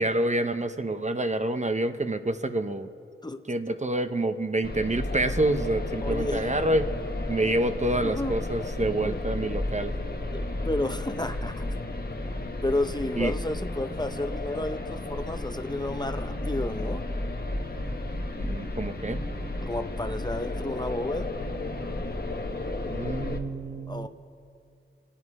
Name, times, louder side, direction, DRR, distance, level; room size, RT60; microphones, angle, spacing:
voice 1, 0.0-2.9 3.5-6.9 7.3-9.9 13.2-13.3 18.4-19.2 22.9-24.1, right 1 dB, 35° right, 9 dB, 0.8 m, -27 dB
sound 1, 4.6-23.4, left 2 dB, 50° left, 1.1 m, -33 dB
voice 2, 6.0-6.5 8.0-8.3 9.0-9.5 10.3-11.7 12.6-17.0 19.7-21.3 23.9-24.1, left 2 dB, 20° left, 7 dB, 0.6 m, -32 dB
26.5 x 10.0 x 4.7 m, 2.4 s
wide cardioid pair, 60°, 21 cm